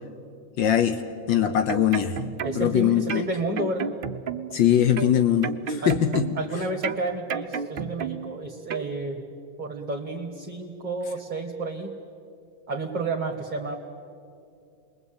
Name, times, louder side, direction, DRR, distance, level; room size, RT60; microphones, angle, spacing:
voice 1, 0.6-1.0 1.3-2.2 2.5-3.2 4.5-6.3, left 10 dB, 80° left, 8 dB, 1.7 m, -21 dB
sound 1, 1.5-2.8 3.1-4.6 5.0-6.5 6.8-8.4 8.7-8.9, right 6 dB, 80° right, 0.4 m, -32 dB
voice 2, 2.4-3.9 5.8-5.9 6.3-9.2 9.6-11.9 12.7-13.8, right 2 dB, 25° right, 1 dB, 1.7 m, -31 dB
29.5 x 22.0 x 8.9 m, 2.6 s
omnidirectional pair, 2.0 m